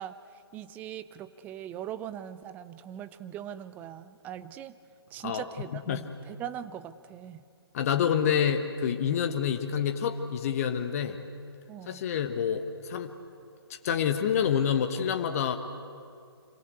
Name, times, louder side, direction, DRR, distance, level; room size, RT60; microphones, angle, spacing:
voice 1, 0.0-4.8 5.1-7.4 11.7-12.0, right 10 dB, 10° right, 13 dB, 0.6 m, -41 dB
voice 2, 5.7-6.0 7.7-11.2 11.9-13.1 13.8-15.6, left 8 dB, 35° left, 6 dB, 1.3 m, -27 dB
26.5 x 23.5 x 8.1 m, 2.3 s
figure-of-eight pair, 135°, 14 cm